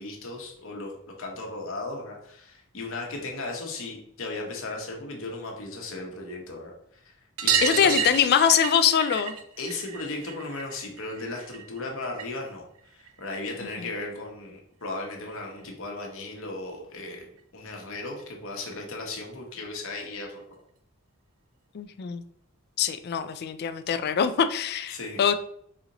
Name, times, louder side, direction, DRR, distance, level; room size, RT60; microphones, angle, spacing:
voice 1, 0.0-6.7 7.4-8.1 9.6-12.6 12.9-17.3 17.5-20.4 24.9-25.2, left 2 dB, 65° left, 0 dB, 1.1 m, -36 dB
sound 1, 7.4-12.5 12.8-13.9 15.3-15.4 15.6-15.7 16.0-16.1 17.4-17.5 17.8-17.9 18.2-18.3 19.5-19.6 20.4-20.5, right 7 dB, 80° right, 0.5 m, -31 dB
voice 2, 7.6-9.3 21.7-22.2 22.8-25.4, left 8 dB, 50° left, 10 dB, 0.3 m, -23 dB
4.2 x 2.9 x 3.8 m, 0.69 s
head